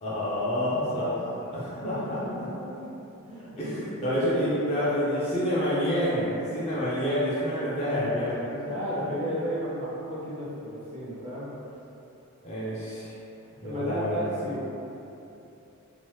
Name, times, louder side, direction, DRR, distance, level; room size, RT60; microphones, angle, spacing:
voice 1, 0.0-1.2 1.5-2.5 3.5-8.3 8.7-8.8 9.0-9.2 12.4-13.1 13.6-14.2, equal, 30° left, -9 dB, 0.5 m, -28 dB
voice 2, 0.7-1.2 2.2-3.6 3.9-4.4 7.9-8.0 8.3-11.5 13.6-14.7, equal, 30° right, -10 dB, 0.7 m, -34 dB
2.9 x 2.0 x 3.1 m, 2.9 s
head